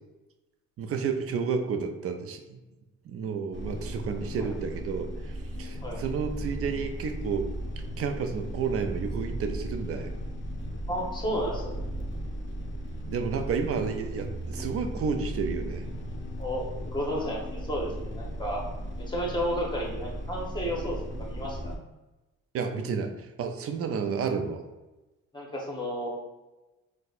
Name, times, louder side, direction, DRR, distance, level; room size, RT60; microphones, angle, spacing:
voice 1, 0.8-2.6 3.0-7.5 8.0-10.1 13.0-15.9 22.5-24.6, right 5 dB, 50° right, 6 dB, 0.4 m, -31 dB
sound 1, 3.5-21.8, right 1 dB, 40° left, 0.6 m, -36 dB
voice 2, 10.9-11.8 16.4-18.6 19.0-21.7 25.3-26.2, equal, 15° left, -2 dB, 0.9 m, -32 dB
4.0 x 2.2 x 2.4 m, 1.1 s
cardioid pair, 90°, 30 cm